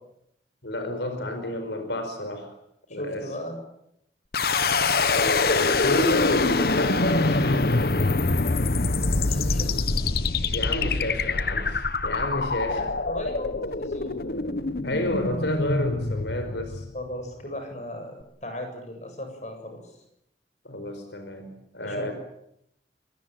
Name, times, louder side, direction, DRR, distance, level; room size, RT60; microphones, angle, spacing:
voice 1, 0.6-2.5 2.9-3.3 5.1-7.8 10.5-12.8 14.2-14.5 14.8-16.9 20.6-22.1, left 1 dB, 85° left, 7 dB, 4.8 m, -30 dB
voice 2, 2.9-3.6 9.3-9.7 12.7-14.5 16.9-19.8 21.8-22.1, left 1 dB, 40° left, 5 dB, 7.6 m, -37 dB
sound 1, 4.3-17.3, left 3 dB, 55° left, 1.1 m, -25 dB
25.0 x 21.0 x 9.1 m, 0.78 s
head